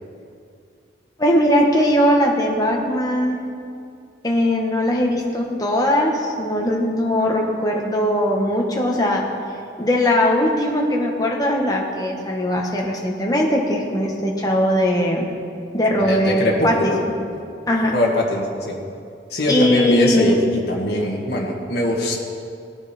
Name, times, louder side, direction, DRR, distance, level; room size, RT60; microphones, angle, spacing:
voice 1, 1.2-3.4 4.2-9.2 9.8-15.3 15.7-16.9 17.7-17.9 19.5-20.4, left 1 dB, 20° left, -1 dB, 1.5 m, -19 dB
voice 2, 16.0-17.0 17.9-18.8 19.3-22.3, left 1 dB, 55° left, -2 dB, 1.7 m, -22 dB
18.0 x 8.9 x 4.4 m, 2.4 s
head